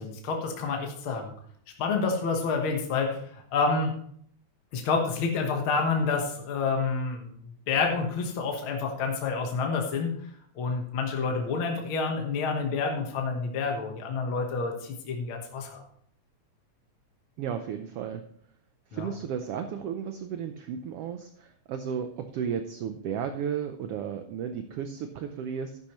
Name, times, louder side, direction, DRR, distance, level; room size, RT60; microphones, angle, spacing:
voice 1, 0.0-1.3 1.8-3.9 4.7-7.3 7.7-10.2 10.6-15.8 18.9-19.1, left 4 dB, 55° left, 2 dB, 1.7 m, -28 dB
voice 2, 17.4-18.2 18.9-25.8, right 7 dB, 85° right, 7 dB, 1.3 m, -34 dB
12.0 x 10.0 x 3.0 m, 0.62 s
omnidirectional pair, 3.5 m